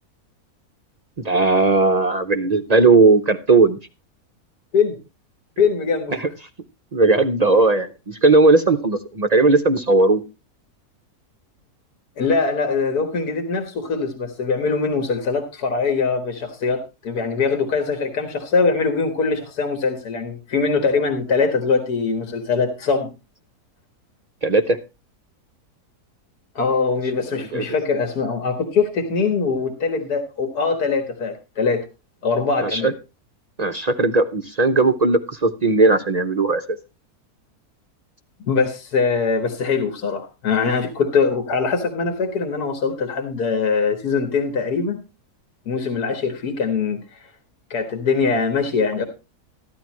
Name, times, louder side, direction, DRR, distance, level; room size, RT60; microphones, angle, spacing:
voice 1, 1.2-3.8 6.1-6.3 6.9-10.2 24.4-24.8 27.5-27.6 32.6-32.9 33.6-36.8, right 3 dB, 45° right, 7 dB, 0.5 m, -17 dB
voice 2, 5.6-6.2 12.2-23.1 26.6-31.8 32.2-32.9 38.4-45.0 45.7-47.3 47.7-49.0, left 4 dB, 80° left, 5 dB, 2.0 m, -22 dB
14.0 x 11.0 x 3.1 m, 0.28 s
omnidirectional pair, 1.7 m